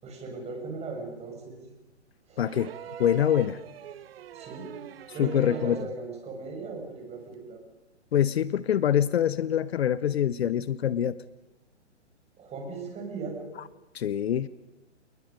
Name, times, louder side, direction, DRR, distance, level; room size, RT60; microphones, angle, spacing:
voice 1, 0.0-1.6 2.3-2.4 4.3-4.7 5.1-7.6 12.4-13.5, right 4 dB, 20° right, 2 dB, 6.1 m, -37 dB
voice 2, 2.4-2.7 3.0-3.6 5.2-5.8 8.1-11.2 13.9-14.5, left 10 dB, 60° left, 18 dB, 0.8 m, -25 dB
sound 1, 2.4-6.0 7.3-7.4, right 10 dB, 55° right, 1.1 m, -43 dB
29.5 x 20.5 x 5.3 m, 0.99 s
hypercardioid pair, 130°, 35 cm